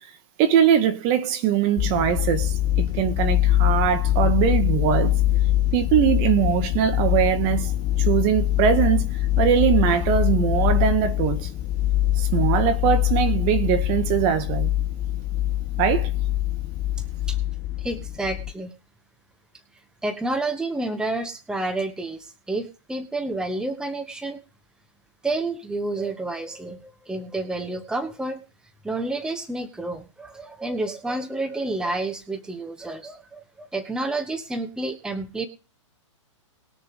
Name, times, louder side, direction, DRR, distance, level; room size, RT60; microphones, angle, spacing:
voice 1, 0.4-5.1 5.7-7.7 8.0-9.1 9.4-11.5 12.2-14.7 15.8-16.1, right 9 dB, 40° right, 1.7 m, -21 dB
sound 1, 1.8-18.5, left 13 dB, 30° left, 0.5 m, -23 dB
voice 2, 17.0-17.4 17.8-18.7 20.0-24.4 25.2-28.4 28.8-35.5, right 2 dB, 5° right, 1.2 m, -29 dB
20.0 x 6.6 x 5.2 m
hypercardioid pair, 130°, 16 cm